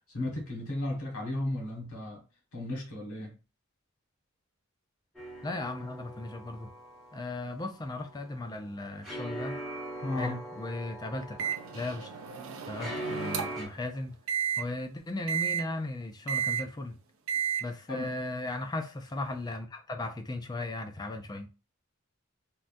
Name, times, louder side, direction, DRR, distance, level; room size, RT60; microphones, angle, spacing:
voice 1, 0.1-2.2 2.5-3.4 10.0-10.4 17.9-18.1, left 1 dB, 85° left, 1.3 m, -34 dB
sound 1, 5.1-13.7, right 1 dB, ahead, 0.9 m, -42 dB
voice 2, 5.4-6.7 7.1-9.6 10.2-12.1 12.7-14.2 14.6-17.0 17.6-21.5, left 2 dB, 20° left, 0.3 m, -36 dB
Microwave oven, 11.4-13.7 14.3-14.6 15.3-15.6 16.3-16.6 17.3-17.6, right 8 dB, 65° right, 0.5 m, -32 dB
3.6 x 2.2 x 2.5 m
head